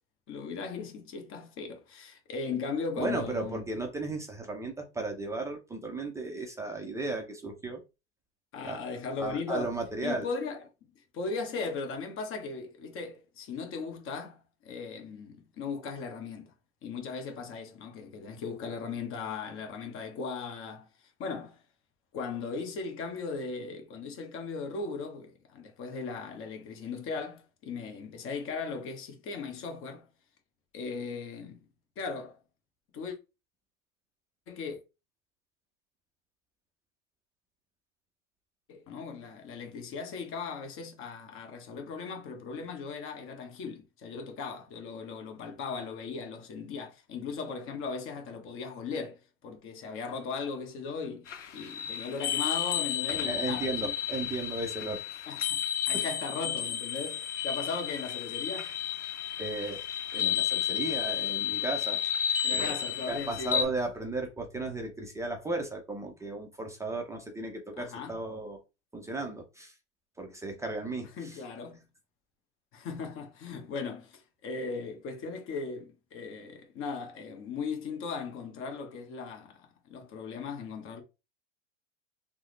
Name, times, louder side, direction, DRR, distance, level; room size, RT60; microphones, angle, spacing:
voice 1, 0.3-3.6 8.5-9.8 10.0-10.6 11.1-16.5 16.8-20.9 21.2-21.6 22.1-30.1 30.7-31.7 32.0-32.4 32.9-33.2 34.5-34.8 38.7-51.3 51.5-53.9 54.6-54.7 55.3-55.6 55.9-58.7 62.4-63.7 67.8-68.2 71.2-71.8 72.7-81.0, left 4 dB, 35° left, 1.0 m, -38 dB
voice 2, 3.0-7.8 8.6-8.9 9.2-10.3 53.1-55.0 55.9-56.0 59.4-59.8 60.1-62.0 62.5-62.7 63.1-68.6 68.9-69.7 70.2-71.4, right 2 dB, 10° right, 0.4 m, -35 dB
sound 1, 51.3-63.6, left 9 dB, 85° left, 0.6 m, -32 dB
3.5 x 2.0 x 3.1 m
hypercardioid pair, 100°, 36 cm